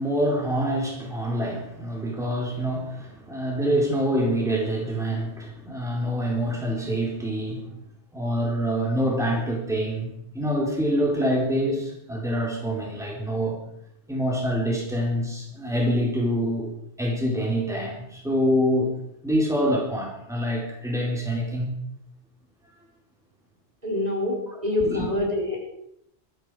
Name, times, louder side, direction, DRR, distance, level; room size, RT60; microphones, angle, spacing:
voice 1, 0.0-7.7 8.1-13.6 14.1-16.7 17.0-18.9 19.2-21.7 24.5-25.1, equal, 5° right, 3.9 m, -26 dB
voice 2, 23.8-25.6, left 2 dB, 35° right, 4.3 m, -26 dB
20.0 x 14.5 x 4.9 m
omnidirectional pair, 1.2 m